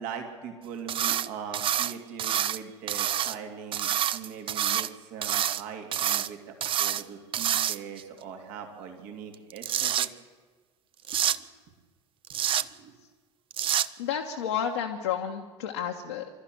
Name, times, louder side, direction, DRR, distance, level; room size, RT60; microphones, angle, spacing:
voice 1, 0.0-10.1 12.6-12.9, right 7 dB, 55° right, 4 dB, 3.0 m, -41 dB
sound 1, 0.9-1.3 1.5-2.6 2.9-3.3 3.7-4.9 5.2-5.6 5.9-6.3 6.6-7.0 7.3-8.0 9.3-10.1 11.1-11.4 12.3-12.6 13.5-13.9, right 10 dB, 35° right, 0.7 m, -27 dB
voice 2, 14.0-16.3, left 8 dB, 70° left, 2 dB, 1.4 m, -31 dB
26.0 x 13.0 x 9.4 m, 1.4 s
figure-of-eight pair, 65°, 15 cm